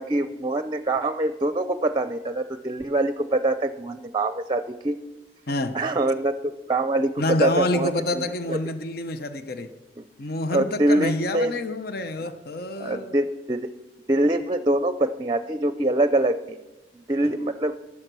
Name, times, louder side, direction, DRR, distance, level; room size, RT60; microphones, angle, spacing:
voice 1, 0.0-5.0 5.7-6.3 6.7-8.2 8.5-8.6 10.0-10.1 10.5-11.5 12.2-12.3 12.8-13.7 14.1-16.6 16.9-17.8, right 2 dB, 25° right, 0.6 m, -24 dB
voice 2, 5.5-5.8 7.2-9.7 10.2-13.2, left 2 dB, 60° left, 0.9 m, -27 dB
15.0 x 12.5 x 6.2 m
head